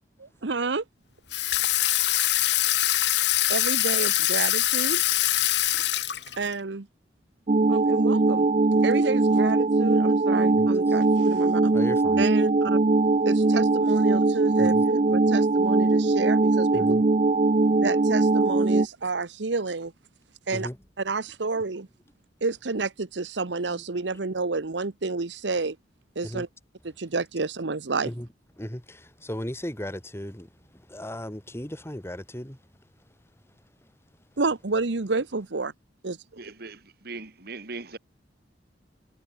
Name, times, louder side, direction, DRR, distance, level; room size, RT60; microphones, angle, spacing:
voice 1, 0.2-0.8 3.5-5.0 6.4-6.9 7.7-8.5 8.8-11.7 12.2-12.8 13.3-17.0 17.8-19.9 20.5-20.7 21.0-21.9 22.4-25.8 26.1-26.5 26.8-28.1 34.4-35.7 36.0-36.2, right 3 dB, 75° right, 1.0 m, -30 dB
Water tap faucet / Sink (filling or washing), 1.3-6.5, left 14 dB, 70° left, 2.2 m, -23 dB
sound 1, 7.5-18.9, right 3 dB, 40° right, 0.6 m, -21 dB
voice 2, 10.5-11.0 11.7-12.2 14.6-14.8 16.7-17.0 20.5-20.8 23.7-23.8 26.2-26.4 28.0-28.3 28.6-32.6, equal, 15° left, 2.7 m, -36 dB
voice 3, 36.4-38.0, right 3 dB, 60° right, 2.5 m, -39 dB
head